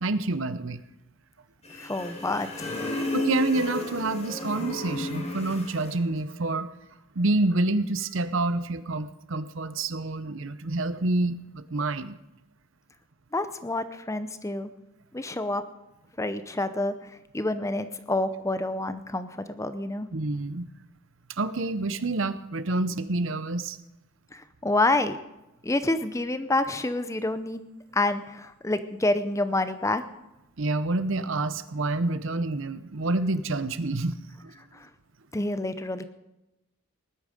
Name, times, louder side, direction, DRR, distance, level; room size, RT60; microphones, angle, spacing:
voice 1, 0.0-0.8 3.1-6.7 7.1-12.2 20.1-20.7 21.3-23.8 30.6-34.5, right 2 dB, 60° right, 14 dB, 0.8 m, -28 dB
sound 1, 1.6-6.0, left 2 dB, 30° left, 2.1 m, -32 dB
voice 2, 1.7-2.7 13.3-14.7 15.1-15.6 16.2-20.1 24.3-25.2 25.6-27.6 27.9-30.0 34.7-34.9 35.3-36.0, left 2 dB, 15° left, 11 dB, 0.6 m, -28 dB
19.0 x 12.0 x 5.2 m, 0.97 s
head